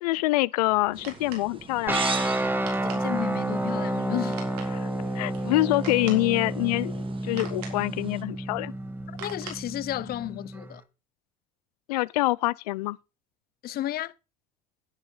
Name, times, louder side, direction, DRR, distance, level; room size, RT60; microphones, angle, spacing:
voice 1, 0.0-2.1 4.7-8.7 11.9-13.0, left 20 dB, 85° left, 0.5 m, -26 dB
sound 1, 0.7-10.3, right 5 dB, 80° right, 3.9 m, -46 dB
sound 2, 0.9-8.2, right 4 dB, 25° right, 1.9 m, -40 dB
sound 3, 1.9-10.8, right 1 dB, 10° right, 2.0 m, -30 dB
voice 2, 2.8-4.4 9.2-10.8 13.6-14.1, left 14 dB, 50° left, 0.7 m, -32 dB
10.5 x 9.8 x 3.9 m
hypercardioid pair, 75°, 20 cm